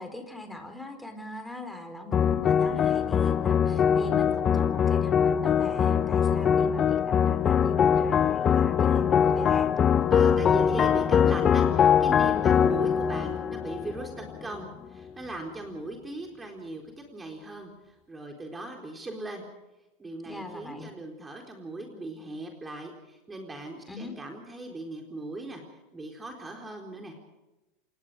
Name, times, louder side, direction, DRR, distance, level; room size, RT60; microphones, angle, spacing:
voice 1, 0.0-9.7 20.2-20.9 23.9-24.1, left 2 dB, 5° left, 6 dB, 4.3 m, -41 dB
sound 1, 2.1-14.6, left 8 dB, 30° left, 0.7 m, -23 dB
voice 2, 10.1-16.8 17.1-19.4 20.0-25.6 25.9-27.1, right 2 dB, 15° right, 2 dB, 4.1 m, -38 dB
28.0 x 20.5 x 5.1 m, 1.0 s
hypercardioid pair, 95°, 0 cm